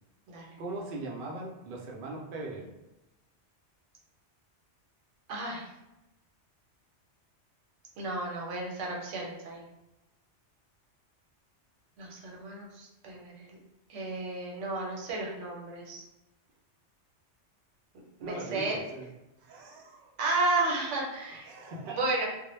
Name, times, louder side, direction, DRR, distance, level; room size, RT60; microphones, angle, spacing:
voice 1, 0.6-2.7 18.2-19.1 19.4-20.2 21.4-22.0, right 2 dB, 60° right, -1 dB, 0.6 m, -40 dB
voice 2, 5.3-5.7 8.0-9.6 12.0-13.5 13.9-16.0 18.2-18.8 20.2-21.5 21.8-22.3, right 2 dB, 85° right, -2 dB, 1.0 m, -32 dB
2.1 x 2.1 x 3.0 m, 0.96 s
omnidirectional pair, 1.2 m